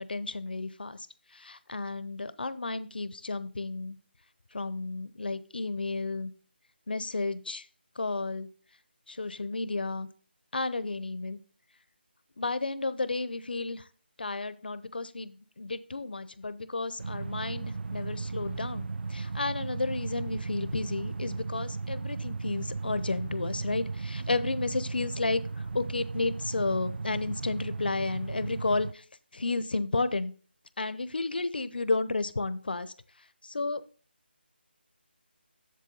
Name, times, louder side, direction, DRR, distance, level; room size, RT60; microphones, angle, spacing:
voice 1, 0.0-4.0 4.5-6.3 6.9-7.7 8.0-8.5 9.1-10.1 10.5-11.4 12.4-13.9 14.2-29.0 29.3-30.3 30.8-32.9 33.4-33.8, left 3 dB, 60° left, 14 dB, 0.7 m, -32 dB
sound 1, 17.0-28.9, right 4 dB, 70° right, 0.3 m, -36 dB
7.6 x 7.4 x 3.9 m, 0.40 s
figure-of-eight pair, 175°, 6 cm